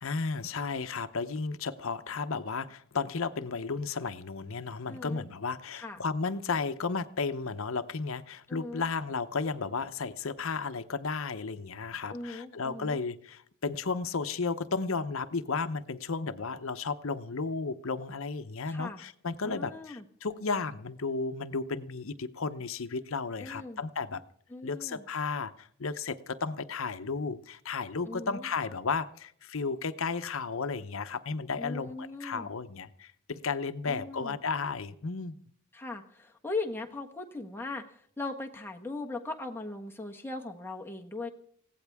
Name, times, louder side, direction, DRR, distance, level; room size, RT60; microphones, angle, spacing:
voice 1, 0.0-24.2 24.6-35.4, left 4 dB, 65° left, 9 dB, 0.8 m, -33 dB
voice 2, 4.9-5.3 5.7-6.0 8.5-8.9 12.1-13.0 18.7-19.0 19.4-20.0 23.4-23.8 24.5-25.0 28.0-28.5 31.6-32.5 33.9-34.4 35.7-41.3, left 2 dB, 10° left, 2 dB, 1.2 m, -39 dB
20.5 x 16.0 x 3.5 m, 0.64 s
head